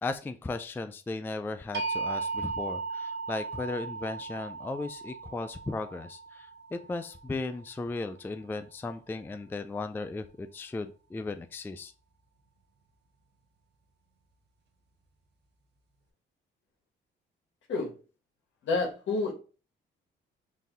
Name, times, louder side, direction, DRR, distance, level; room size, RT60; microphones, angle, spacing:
voice 1, 0.0-11.9, left 3 dB, 10° left, 10 dB, 0.3 m, -36 dB
sound 1, 1.7-7.7, right 4 dB, 60° right, 1.0 m, -37 dB
voice 2, 18.6-19.3, left 3 dB, 70° left, 1 dB, 1.4 m, -29 dB
3.9 x 2.6 x 3.7 m, 0.35 s
cardioid pair, 90°, 20 cm